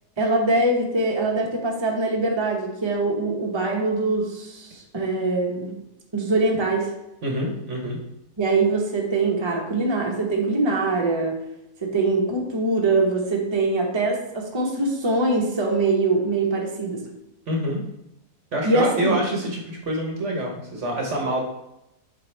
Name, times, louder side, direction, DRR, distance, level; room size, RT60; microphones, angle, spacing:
voice 1, 0.2-5.7 6.1-6.9 8.4-11.4 11.8-17.0 18.6-19.2, right 2 dB, 20° right, -1 dB, 0.9 m, -23 dB
voice 2, 7.2-8.0 17.5-17.8 18.5-21.4, right 1 dB, 50° right, 0 dB, 1.2 m, -26 dB
7.4 x 4.4 x 3.3 m, 0.86 s
omnidirectional pair, 1.7 m